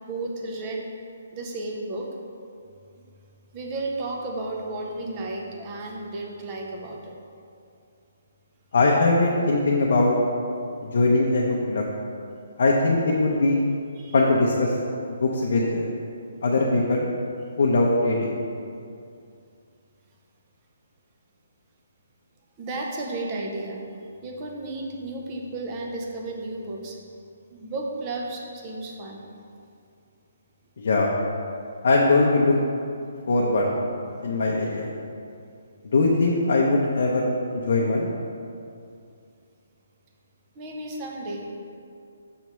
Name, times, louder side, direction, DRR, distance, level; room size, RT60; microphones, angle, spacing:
voice 1, 0.1-0.9 1.3-2.2 3.5-7.1 14.0-14.1 22.6-27.0 27.5-29.3 40.6-41.5, right 2 dB, 20° right, 0 dB, 0.6 m, -33 dB
voice 2, 8.7-10.2 10.8-11.9 12.6-13.6 14.1-14.7 15.2-15.9 16.4-17.1 17.6-18.3 30.8-31.1 31.8-32.6 33.3-33.8 34.2-34.9 35.9-38.1, left 2 dB, 50° left, -2 dB, 0.6 m, -21 dB
6.5 x 3.1 x 5.8 m, 2.5 s
hypercardioid pair, 175°, 0 cm